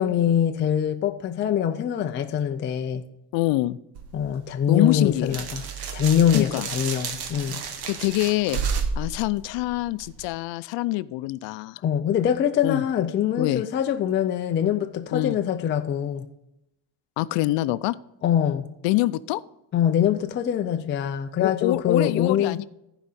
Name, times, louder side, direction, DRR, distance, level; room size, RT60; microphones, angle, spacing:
voice 1, 0.0-3.0 4.1-5.6 5.9-7.6 11.8-16.3 18.2-18.7 19.7-22.6, left 9 dB, 30° left, 0.3 m, -23 dB
voice 2, 3.3-3.8 4.7-5.4 6.3-6.7 7.9-8.6 9.0-11.8 12.6-12.8 13.4-13.6 15.1-15.4 17.2-18.0 18.8-19.4 21.4-22.7, left 17 dB, 85° left, 0.5 m, -25 dB
sound 1, 4.0-10.3, right 5 dB, 60° right, 1.1 m, -32 dB
15.0 x 5.0 x 4.2 m
cardioid pair, 180°, 43 cm